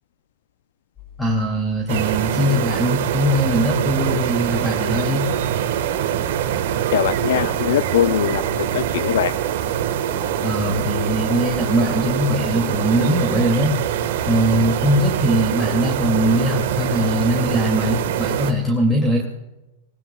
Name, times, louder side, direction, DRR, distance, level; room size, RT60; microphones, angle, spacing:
sound 1, 1.0-12.2, left 5 dB, 25° left, 5.7 m, -44 dB
voice 1, 1.2-5.3 10.4-13.8 14.3-19.2, equal, 5° left, 0 dB, 2.6 m, -21 dB
sound 2, 1.9-18.5, right 10 dB, 65° right, 1.6 m, -24 dB
sound 3, 4.0-5.3 5.5-18.7, right 6 dB, 45° right, 4.7 m, -38 dB
voice 2, 6.9-8.4 8.7-9.3, left 11 dB, 70° left, 15 dB, 0.4 m, -21 dB
25.5 x 19.0 x 2.4 m, 1.0 s
hypercardioid pair, 115°, 0 cm